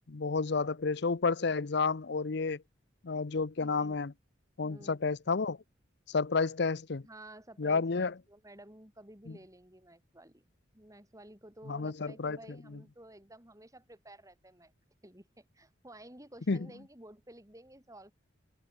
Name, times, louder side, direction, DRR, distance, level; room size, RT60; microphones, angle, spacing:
voice 1, 0.0-2.6 3.0-4.1 4.6-5.6 6.1-7.0 7.6-8.1 9.3-9.4 11.7-12.4 16.5-16.7, left 4 dB, 60° left, 0.7 m, -31 dB
voice 2, 3.6-4.0 4.6-5.0 7.0-10.4 10.7-14.7 15.0-18.1, right 1 dB, 15° right, 7.7 m, -53 dB
head